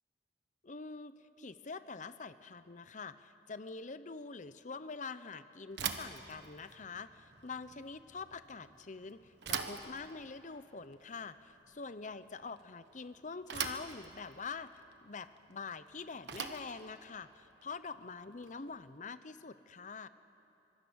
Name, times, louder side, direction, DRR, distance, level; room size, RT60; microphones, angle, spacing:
voice 1, 0.6-20.1, left 4 dB, 45° left, 13 dB, 0.8 m, -45 dB
Bicycle / Thump thud, 5.7-18.8, right 7 dB, 75° right, 1.3 m, -44 dB
25.0 x 22.5 x 6.4 m, 2.8 s
head